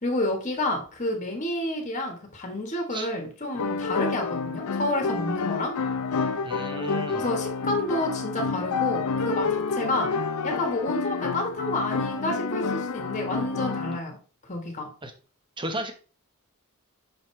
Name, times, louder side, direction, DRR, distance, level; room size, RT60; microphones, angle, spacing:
voice 1, 0.0-5.7 7.2-10.1 10.4-14.2 14.5-14.9, left 1 dB, 35° left, 3 dB, 1.5 m, -29 dB
sound 1, 3.5-14.0, left 4 dB, 85° left, 0.5 m, -29 dB
voice 2, 6.4-7.3 15.0-15.1 15.6-15.9, right 1 dB, 20° right, 6 dB, 0.9 m, -34 dB
6.0 x 5.1 x 3.2 m, 0.38 s
head